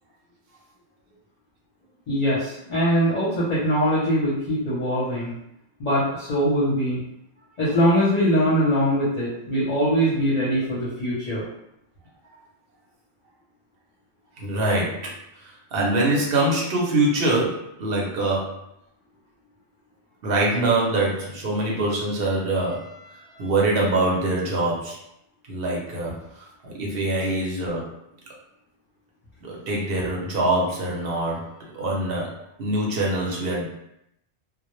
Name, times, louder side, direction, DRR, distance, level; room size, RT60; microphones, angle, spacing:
voice 1, 2.1-5.3 5.8-7.0 7.6-11.4, equal, 45° left, -9 dB, 0.7 m, -22 dB
voice 2, 14.4-15.1 15.7-18.6 20.2-25.0 25.5-26.2 26.6-27.9 29.4-31.5 31.7-33.7, right 2 dB, 60° right, -3 dB, 0.8 m, -24 dB
2.1 x 2.0 x 3.0 m, 0.80 s
omnidirectional pair, 1.2 m